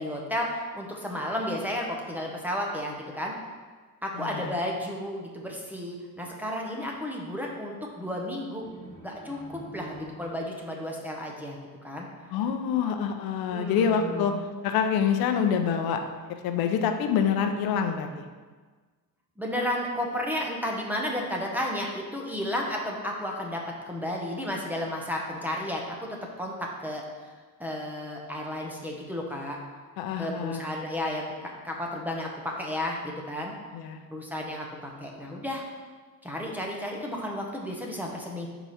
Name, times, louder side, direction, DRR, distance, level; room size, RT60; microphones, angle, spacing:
voice 1, 0.0-3.3 4.0-8.6 9.0-11.6 11.8-12.1 13.5-14.4 19.4-26.1 26.4-27.3 27.6-29.6 30.2-33.5 34.1-35.7 36.2-38.5, left 1 dB, 5° right, -1 dB, 0.6 m, -33 dB
voice 2, 4.1-4.5 12.3-14.3 14.6-16.0 16.4-18.3 30.0-30.7 33.7-34.0, left 7 dB, 80° left, 6 dB, 0.7 m, -26 dB
sound 1, 8.6-10.6, right 1 dB, 40° right, 1.8 m, -45 dB
4.7 x 4.0 x 5.6 m, 1.4 s
cardioid pair, 155°, 36 cm